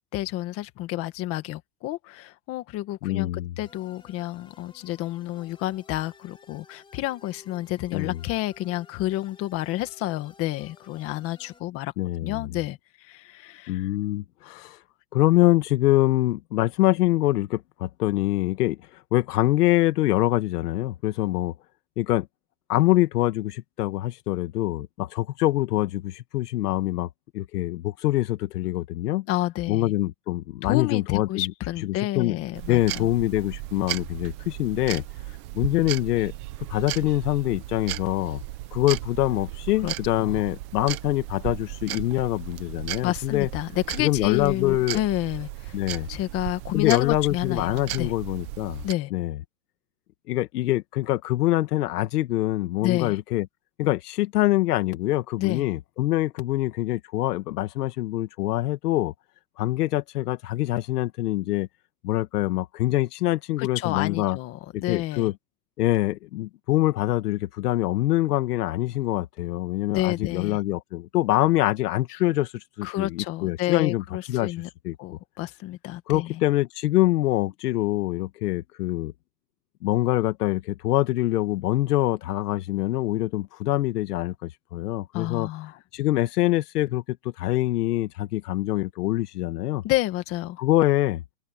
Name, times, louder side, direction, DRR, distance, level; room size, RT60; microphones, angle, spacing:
voice 1, 0.1-3.3 3.6-11.9 12.2-13.9 14.4-14.8 29.3-29.9 30.6-33.1 39.8-40.4 43.0-45.8 46.1-48.1 48.8-49.1 52.8-53.2 55.4-55.7 63.6-65.3 69.9-70.6 72.8-74.7 75.0-76.4 85.1-85.8 89.8-90.6, left 16 dB, 30° left, 1.7 m, -30 dB
voice 2, 3.0-3.5 7.9-8.2 12.0-12.5 13.7-14.8 15.1-18.8 19.1-21.5 22.0-22.3 22.7-27.1 27.3-29.3 29.7-31.5 31.8-32.4 32.7-35.0 35.5-36.3 36.7-38.4 38.7-43.5 44.0-45.0 45.7-46.1 46.7-48.8 49.1-49.4 50.3-53.5 53.8-59.1 59.6-61.7 62.0-64.4 64.9-65.3 65.8-72.5 72.8-74.0 74.3-74.5 74.8-75.0 76.1-79.1 79.8-85.5 85.9-89.8 90.6-91.2, left 16 dB, 65° left, 1.9 m, -24 dB
sound 1, 3.6-11.6, left 5 dB, 10° left, 3.7 m, -54 dB
sound 2, 32.5-48.9, right 16 dB, 20° right, 0.4 m, -36 dB
open air
supercardioid pair, 165°, 50 cm